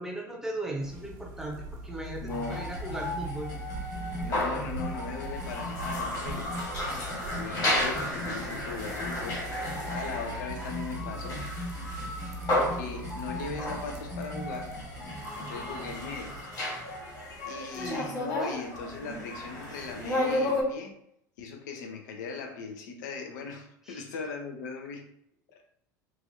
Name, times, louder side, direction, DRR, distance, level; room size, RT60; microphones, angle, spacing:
voice 1, 0.0-3.5 17.7-18.3 23.9-24.0, right 1 dB, 5° right, 0 dB, 0.8 m, -37 dB
sound 1, 0.8-16.4, right 1 dB, 55° right, 0.7 m, -42 dB
voice 2, 2.2-2.6 4.2-6.5 7.3-11.4 12.7-14.7 15.3-16.5 17.4-20.9 21.4-25.0 25.5-25.6, left 5 dB, 70° left, 3 dB, 0.6 m, -39 dB
sound 2, 2.3-20.6, left 1 dB, 35° left, 1.4 m, -33 dB
3.0 x 2.5 x 2.7 m, 0.72 s
hypercardioid pair, 75°, 10 cm